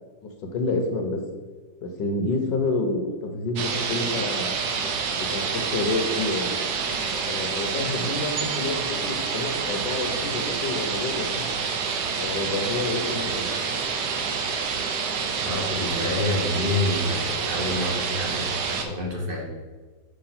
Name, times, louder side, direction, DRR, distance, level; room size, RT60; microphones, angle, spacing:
voice 1, 0.5-1.2 1.8-4.5 5.1-6.5 7.3-11.5 12.1-13.5, left 2 dB, 70° left, 3 dB, 1.4 m, -28 dB
sound 1, 3.6-18.8, right 5 dB, 65° right, 1.1 m, -28 dB
voice 2, 15.4-19.5, left 2 dB, 35° right, -2 dB, 1.1 m, -28 dB
5.8 x 3.3 x 5.7 m, 1.4 s
omnidirectional pair, 2.1 m